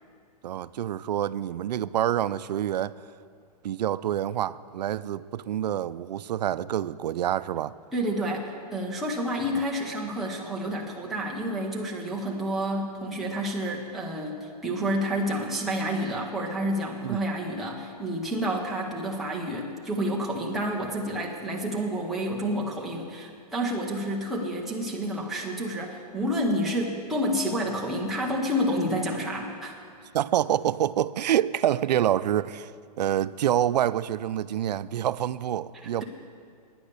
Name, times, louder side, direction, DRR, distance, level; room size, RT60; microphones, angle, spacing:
voice 1, 0.4-3.0 3.6-7.7 17.0-17.2 30.1-32.7 33.0-36.0, right 11 dB, 90° right, 0.4 m, -27 dB
voice 2, 7.9-29.8 35.8-36.0, equal, ahead, 0.6 m, -29 dB
10.0 x 9.5 x 6.7 m
hypercardioid pair, 175°, 21 cm